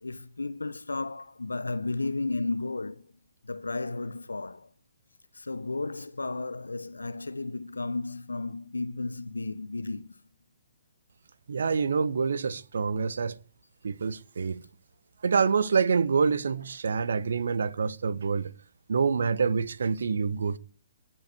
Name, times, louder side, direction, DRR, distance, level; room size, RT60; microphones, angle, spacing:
voice 1, 0.0-3.1 3.4-4.7 5.3-10.2, left 3 dB, 75° left, 0.9 m, -33 dB
voice 2, 11.5-13.4 13.8-14.6 15.2-18.5 18.9-20.6, right 5 dB, 60° right, 1.0 m, -26 dB
22.0 x 7.9 x 8.1 m
figure-of-eight pair, 125°, 0 cm